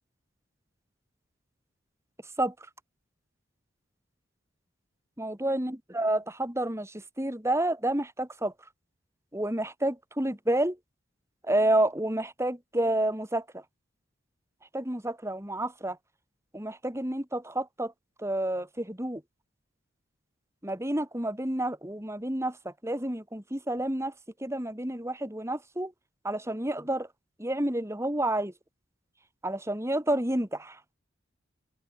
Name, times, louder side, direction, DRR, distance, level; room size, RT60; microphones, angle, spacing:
voice 1, 5.2-8.5 9.3-10.8 11.4-13.6 14.7-16.0 16.5-17.9 18.2-19.2 20.6-24.1 24.4-25.9 26.2-27.1 27.4-28.5 29.4-30.8, right 1 dB, 15° right, 3.3 m, -29 dB
open air
head